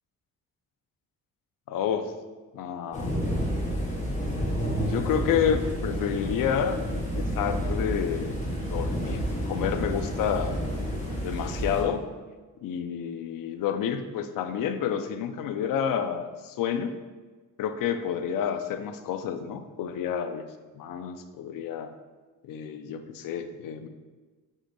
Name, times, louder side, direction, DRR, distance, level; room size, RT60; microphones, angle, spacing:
voice 1, 1.7-2.1 2.5-3.1 4.8-8.4 8.7-10.6 11.2-12.0 12.6-16.9 17.6-20.5 20.7-21.9 22.4-23.9, left 8 dB, 85° left, 8 dB, 0.5 m, -29 dB
sound 1, 2.9-11.8, equal, 25° left, 0.9 m, -30 dB
4.8 x 2.6 x 3.9 m, 1.3 s
wide cardioid pair, 155°, 32 cm